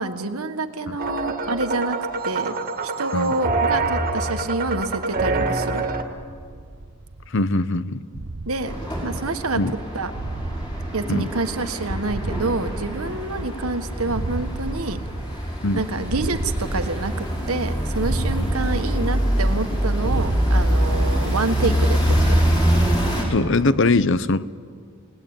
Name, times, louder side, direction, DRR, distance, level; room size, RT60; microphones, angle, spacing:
voice 1, 0.0-2.0 2.2-2.5 2.8-5.8 8.4-8.7 9.0-9.6 9.9-10.1 10.9-15.0 15.7-22.4, right 3 dB, 80° right, 9 dB, 1.5 m, -27 dB
sound 1, 1.0-6.0, right 3 dB, 40° right, 2.0 m, -25 dB
sound 2, 6.1-7.5 8.1-9.7 10.1-11.8 12.1-13.7 14.1-15.8 16.1-17.7 18.0-19.6 20.0-21.7 22.0-23.7, right 2 dB, 60° right, 0.9 m, -32 dB
voice 2, 7.3-8.0 9.6-9.7 11.1-11.3 13.4-13.5 15.6-15.8 18.4-18.5 23.3-24.5, left 3 dB, 60° left, 16 dB, 0.8 m, -21 dB
sound 3, 8.7-23.3, equal, 20° left, 5.5 m, -24 dB
29.0 x 19.0 x 9.0 m, 2.1 s
head